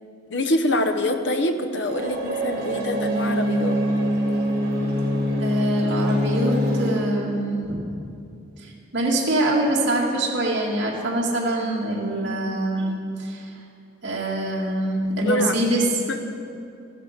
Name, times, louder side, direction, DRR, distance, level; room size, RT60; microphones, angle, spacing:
voice 1, 0.3-3.8 15.2-15.6 16.1-16.2, left 1 dB, 65° left, 7 dB, 0.9 m, -25 dB
sound 1, 1.9-6.9, equal, 50° right, 3.4 m, -24 dB
voice 2, 5.4-7.7 8.6-13.5 14.0-15.8, right 1 dB, 70° right, -4 dB, 2.1 m, -24 dB
15.0 x 12.0 x 5.1 m, 2.5 s
head